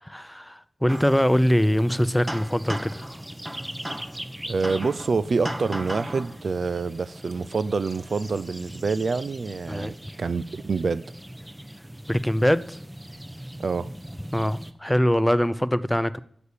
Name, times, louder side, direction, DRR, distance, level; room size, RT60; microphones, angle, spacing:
voice 1, 0.0-3.2 9.7-9.9 12.1-12.8 14.3-16.2, equal, 5° left, 0.6 m, -23 dB
sound 1, 0.9-14.7, equal, 15° right, 0.9 m, -38 dB
voice 2, 4.5-11.0 13.6-13.9, right 4 dB, 65° right, 0.4 m, -27 dB
9.4 x 6.9 x 8.5 m
cardioid pair, 60°, 0 cm